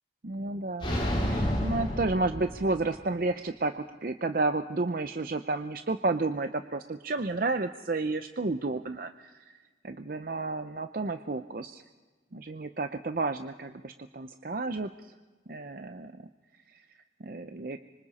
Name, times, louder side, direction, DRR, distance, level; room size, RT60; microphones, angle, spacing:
voice 1, 0.2-9.1 9.8-11.8 12.3-14.9 15.5-16.1 17.2-17.8, right 3 dB, 55° right, 8 dB, 0.6 m, -31 dB
sound 1, 0.8-3.0, equal, 30° left, 3.5 m, -30 dB
26.0 x 25.0 x 4.2 m, 1.3 s
head